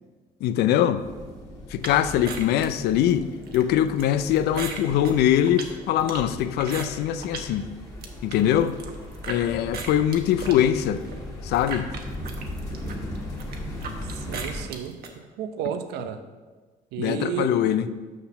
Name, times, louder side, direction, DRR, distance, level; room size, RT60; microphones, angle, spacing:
voice 1, 0.4-1.0 1.7-3.3 3.5-7.6 8.2-8.7 9.3-11.0 11.4-11.9 17.0-17.9, left 10 dB, 75° left, 12 dB, 0.5 m, -22 dB
sound 1, 1.0-14.6, left 1 dB, 20° left, 1.8 m, -38 dB
sound 2, 1.8-7.5 7.9-9.4 9.7-15.1, right 5 dB, 65° right, 1.1 m, -38 dB
voice 2, 14.2-15.0 15.4-16.2 16.9-17.6, right 9 dB, 85° right, 9 dB, 0.7 m, -31 dB
6.4 x 5.8 x 5.7 m, 1.4 s
cardioid pair, 110°, 17 cm